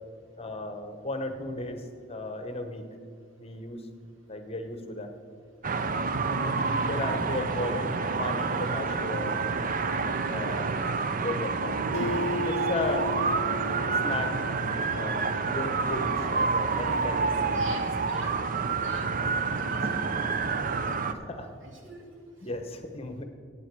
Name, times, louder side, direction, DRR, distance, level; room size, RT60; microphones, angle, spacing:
voice 1, 0.4-2.8 3.4-3.8 4.3-5.1 6.4-7.9 8.2-9.4 10.3-10.7 11.1-11.8 12.3-13.1 13.9-14.5 14.9-17.6 18.9-19.1 21.1-21.5 22.4-23.2, left 2 dB, 30° left, 7 dB, 1.0 m, -35 dB
sound 1, 5.6-21.1, right 4 dB, 45° right, 0.6 m, -28 dB
Acoustic guitar, 11.9-15.4, left 2 dB, 65° left, 0.4 m, -35 dB
voice 2, 17.5-17.8 18.1-18.3 18.8-19.1 19.6-20.1 21.6-22.1, right 2 dB, 90° right, 1 dB, 2.4 m, -43 dB
16.0 x 8.8 x 4.7 m, 2.4 s
head